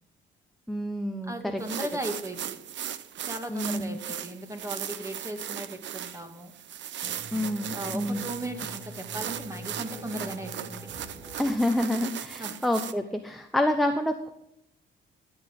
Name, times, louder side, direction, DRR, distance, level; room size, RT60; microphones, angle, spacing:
voice 1, 0.7-1.6 3.5-3.9 7.3-8.2 11.4-14.3, left 1 dB, ahead, 5 dB, 0.9 m, -28 dB
voice 2, 1.3-2.6 3.2-6.5 7.7-10.7 12.4-12.6, right 1 dB, 15° right, 5 dB, 1.9 m, -37 dB
sound 1, 1.6-12.9, right 10 dB, 65° right, 0.7 m, -38 dB
sound 2, 6.9-12.6, equal, 35° right, 2.5 m, -45 dB
12.5 x 8.7 x 3.7 m, 0.79 s
cardioid pair, 90°, 20 cm